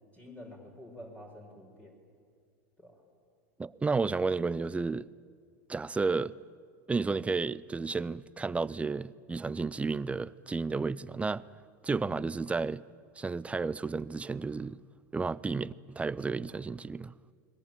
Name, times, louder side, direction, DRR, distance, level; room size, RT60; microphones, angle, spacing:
voice 1, 0.1-1.9 2.8-2.9 11.9-12.1, left 1 dB, 15° left, 5.7 m, -48 dB
voice 2, 3.6-5.1 5.7-6.3 6.9-11.5 11.8-12.8 13.2-14.8 15.1-17.1, right 4 dB, 15° right, 0.6 m, -32 dB
30.0 x 21.5 x 9.1 m
hypercardioid pair, 110°, 9 cm